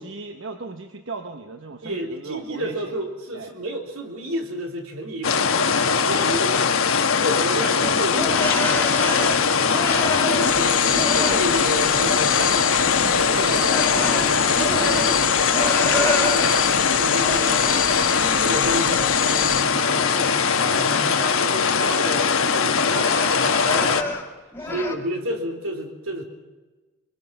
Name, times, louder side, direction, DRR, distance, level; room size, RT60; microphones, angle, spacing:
voice 1, 0.0-3.0 3.3-3.5 10.9-11.1 13.4-14.3 14.7-15.1 15.5-16.6 24.6-24.9, right 3 dB, 55° right, 6 dB, 1.1 m, -36 dB
voice 2, 1.8-6.9 7.2-9.8 10.2-12.7 13.1-13.6 13.9-15.2 15.7-16.6 16.9-17.7 18.1-24.1 24.7-26.2, equal, 75° right, 2 dB, 3.8 m, -31 dB
sound 1, 5.2-24.0, left 5 dB, 70° left, 1.3 m, -21 dB
sound 2, 7.8-10.7 10.9-12.4 12.6-16.7 17.2-18.6 19.0-22.4 22.8-24.3 24.5-25.0, left 2 dB, 10° left, 1.8 m, -29 dB
sound 3, 10.4-19.6, left 9 dB, 40° left, 1.3 m, -27 dB
24.0 x 22.5 x 6.0 m, 1.2 s
head